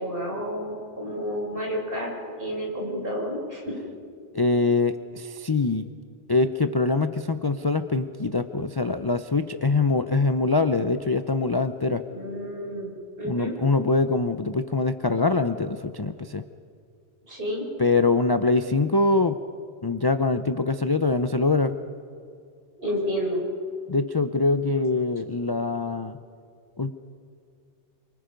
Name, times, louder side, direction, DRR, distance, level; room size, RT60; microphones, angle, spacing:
voice 1, 0.0-3.7 12.1-13.6 17.3-17.6 22.8-23.4, equal, 50° right, -2 dB, 6.1 m, -30 dB
voice 2, 4.3-5.9 6.3-12.0 13.2-16.4 17.8-19.4 19.8-21.8 23.9-26.2 26.8-26.9, left 3 dB, 25° left, 9 dB, 0.5 m, -23 dB
28.0 x 25.0 x 5.2 m, 2.3 s
omnidirectional pair, 1.2 m